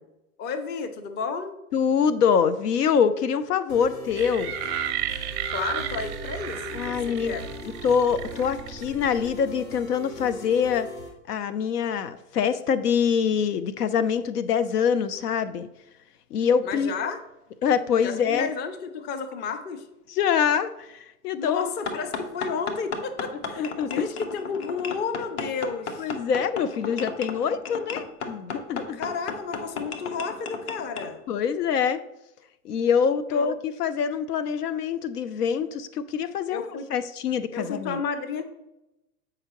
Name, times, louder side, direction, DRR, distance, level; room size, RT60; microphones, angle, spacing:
voice 1, 0.4-1.6 5.5-7.4 16.6-17.2 18.0-19.9 21.3-26.1 28.9-31.2 33.3-33.5 36.5-36.9 37.5-38.4, left 5 dB, 25° left, 9 dB, 0.5 m, -32 dB
voice 2, 1.7-4.5 6.7-7.3 7.8-10.9 11.3-15.7 16.3-16.9 17.6-18.5 20.1-21.7 23.6-24.1 26.0-29.0 31.3-32.0 32.6-38.0, left 7 dB, 85° left, 13 dB, 0.6 m, -25 dB
sound 1, 3.7-11.1, left 3 dB, 65° left, 2.1 m, -41 dB
sound 2, 4.1-9.4, right 10 dB, 30° right, 0.4 m, -33 dB
sound 3, 21.9-31.1, left 4 dB, 45° left, 0.9 m, -34 dB
7.8 x 4.9 x 2.9 m, 0.92 s
hypercardioid pair, 115°, 45 cm